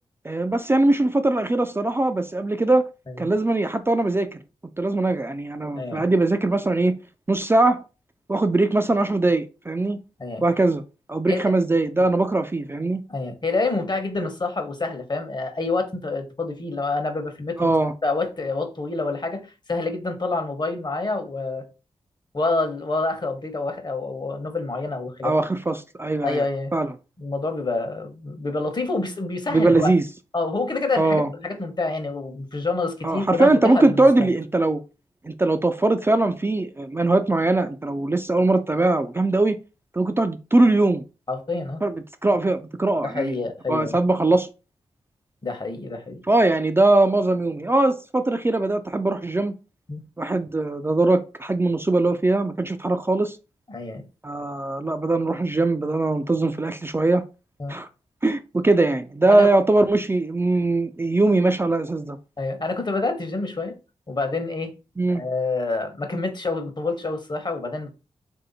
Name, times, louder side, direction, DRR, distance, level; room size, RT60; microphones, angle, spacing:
voice 1, 0.2-2.9 3.2-4.4 4.8-7.0 7.3-7.8 8.3-10.0 10.4-10.8 11.1-13.0 17.6-17.9 25.2-26.4 26.7-26.9 29.5-30.0 31.0-31.3 33.0-34.8 35.2-39.6 39.9-41.0 41.8-43.3 43.7-44.5 46.3-49.5 50.2-53.4 54.2-57.2 57.7-57.9 58.2-62.2 65.0-65.2, right 2 dB, 20° right, 0.4 m, -21 dB
voice 2, 13.1-17.7 18.0-21.6 22.3-25.3 26.2-26.7 27.2-29.9 30.3-34.3 41.3-41.8 43.0-44.0 45.4-46.2 49.9-50.0 53.7-54.0 57.6-57.7 59.3-59.5 62.4-63.7 64.1-64.7 65.1-67.9, left 3 dB, 40° left, 1.0 m, -27 dB
3.3 x 2.8 x 4.0 m
cardioid pair, 45°, 12 cm